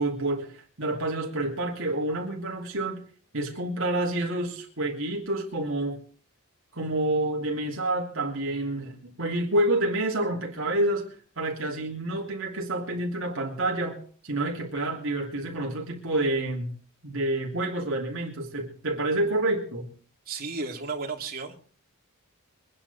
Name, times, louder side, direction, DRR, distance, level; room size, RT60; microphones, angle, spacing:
voice 1, 0.0-3.0 3.3-6.0 6.7-14.0 14.2-16.7 17.0-19.9, right 1 dB, 60° right, -1 dB, 3.0 m, -28 dB
voice 2, 20.2-21.6, right 4 dB, 40° right, 0 dB, 3.2 m, -33 dB
23.5 x 9.8 x 4.3 m, 0.42 s
head